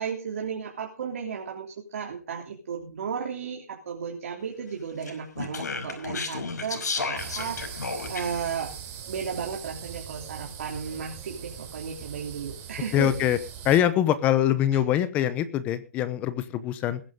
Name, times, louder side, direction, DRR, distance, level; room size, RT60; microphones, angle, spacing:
voice 1, 0.0-8.7 9.1-13.3 14.7-14.8, right 6 dB, 55° right, 0 dB, 3.3 m, -34 dB
Speech, 5.0-8.5, left 4 dB, 85° left, 5.5 m, -33 dB
sound 1, 7.2-13.8, right 8 dB, 20° right, 3.5 m, -41 dB
voice 2, 12.9-13.4 13.6-17.0, left 11 dB, 15° left, 14 dB, 0.9 m, -23 dB
20.5 x 11.0 x 3.8 m, 0.34 s
hypercardioid pair, 165°, 9 cm